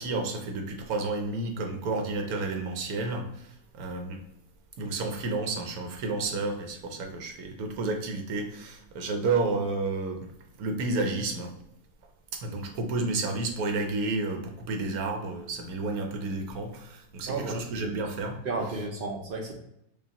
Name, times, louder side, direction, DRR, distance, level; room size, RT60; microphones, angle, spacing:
voice 1, 0.0-4.2 4.8-10.3 10.6-11.5 12.3-18.4, right 3 dB, 80° right, 4 dB, 1.2 m, -31 dB
voice 2, 17.3-17.9 18.5-19.5, right 3 dB, 65° right, 1 dB, 0.5 m, -33 dB
5.0 x 2.3 x 2.8 m, 0.80 s
omnidirectional pair, 1.6 m